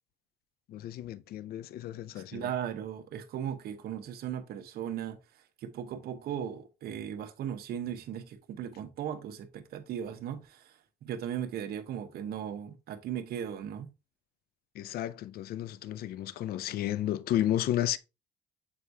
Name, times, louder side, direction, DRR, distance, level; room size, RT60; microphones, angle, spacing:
voice 1, 0.7-2.5 14.8-18.0, left 12 dB, 65° left, 0.5 m, -32 dB
voice 2, 2.3-5.2 5.6-13.9, right 9 dB, 65° right, 1.1 m, -37 dB
7.5 x 4.7 x 2.8 m
cardioid pair, 110°, 17 cm